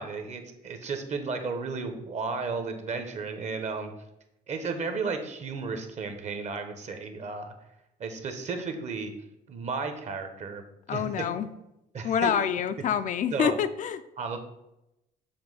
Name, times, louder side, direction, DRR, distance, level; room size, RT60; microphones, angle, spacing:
voice 1, 0.0-3.9 4.5-7.5 8.0-9.1 9.5-10.6 10.9-11.2 11.9-12.3 13.3-13.6 14.2-14.4, right 4 dB, 45° right, 7 dB, 1.0 m, -33 dB
voice 2, 10.9-11.5 12.0-14.0, left 8 dB, 50° left, 11 dB, 0.4 m, -27 dB
7.0 x 3.0 x 5.4 m, 0.88 s
cardioid pair, 110°, 17 cm